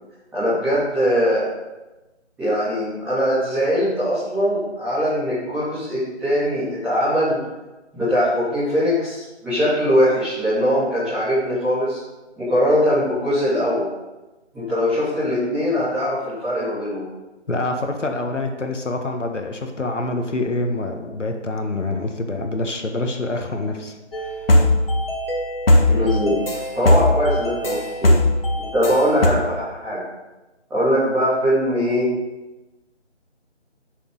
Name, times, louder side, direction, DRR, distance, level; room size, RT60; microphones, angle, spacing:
voice 1, 0.3-1.5 2.4-7.4 7.9-12.0 12.4-13.8 14.5-17.0 25.9-26.4 26.7-28.1 28.6-30.0 30.7-32.1, equal, 5° right, -15 dB, 2.7 m, -21 dB
voice 2, 17.5-23.9 24.2-24.4, left 2 dB, 85° left, 4 dB, 1.6 m, -26 dB
sound 1, 24.1-29.3, left 1 dB, 50° left, 1.9 m, -19 dB
13.0 x 6.9 x 3.9 m, 1.1 s
figure-of-eight pair, 165°, 35 cm